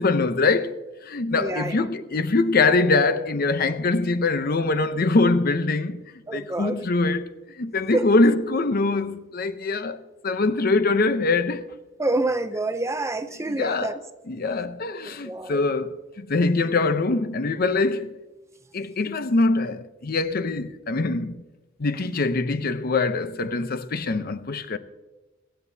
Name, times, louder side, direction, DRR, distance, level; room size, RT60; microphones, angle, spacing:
voice 1, 0.0-6.0 6.3-7.3 7.6-11.6 13.5-14.0 14.3-18.1 18.7-21.4 21.8-24.8, left 3 dB, 50° left, 0.7 m, -23 dB
voice 2, 1.3-1.9 6.3-6.8 7.9-8.1 12.0-14.0 15.0-15.6, right 2 dB, 15° right, 0.5 m, -27 dB
23.0 x 8.1 x 2.8 m
head